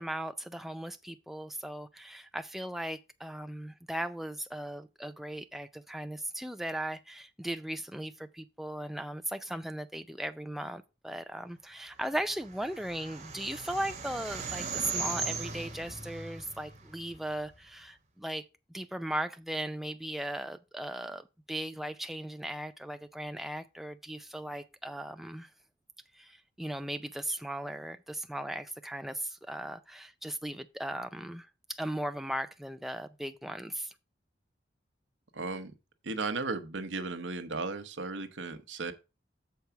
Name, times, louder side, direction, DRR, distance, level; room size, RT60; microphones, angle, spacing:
voice 1, 0.0-25.5 26.1-33.9, right 1 dB, ahead, 0.3 m, -38 dB
sound 1, 12.1-17.6, right 4 dB, 35° right, 1.4 m, -38 dB
voice 2, 35.3-35.7 36.0-38.9, right 3 dB, 80° right, 0.9 m, -35 dB
6.8 x 4.6 x 5.7 m
head